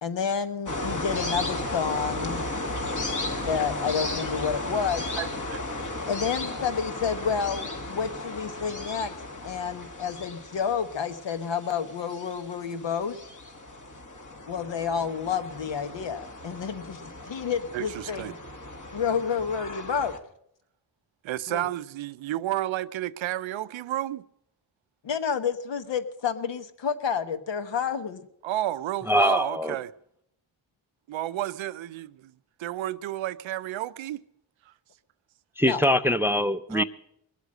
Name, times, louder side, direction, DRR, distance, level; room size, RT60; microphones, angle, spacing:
voice 1, 0.0-2.5 3.5-5.1 6.1-9.2 9.4-13.2 14.5-18.4 18.9-20.1 21.5-21.6 25.0-28.3 35.6-35.8, left 6 dB, 60° left, 1.2 m, -29 dB
sound 1, 0.7-20.2, left 2 dB, 40° left, 1.9 m, -35 dB
voice 2, 5.2-5.6 17.7-18.3 21.2-24.2 28.4-29.9 31.1-32.3 32.6-34.2 34.7-34.8 36.7-36.8, right 13 dB, 70° right, 0.6 m, -31 dB
voice 3, 29.1-29.8 35.6-36.8, left 1 dB, 5° right, 0.5 m, -23 dB
20.5 x 8.2 x 6.5 m
cardioid pair, 70°, 48 cm